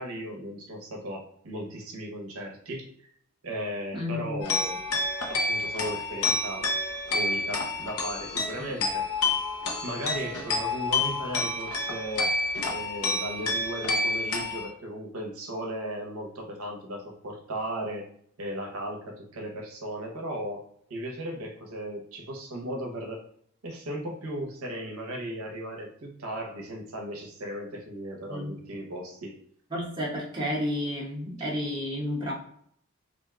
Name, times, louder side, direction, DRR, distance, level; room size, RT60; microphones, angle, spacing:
voice 1, 0.0-2.9 3.4-4.8 5.3-6.7 7.1-9.1 9.8-12.3 12.6-18.1 18.4-20.6 20.9-23.2 23.6-29.3, equal, 75° right, 1 dB, 0.7 m, -36 dB
voice 2, 3.9-4.5 8.6-8.7 28.3-28.5 29.7-32.3, left 1 dB, 20° right, -5 dB, 0.8 m, -31 dB
sound 1, 4.4-14.7, left 3 dB, 85° left, 0.6 m, -29 dB
2.5 x 2.2 x 3.5 m, 0.66 s
head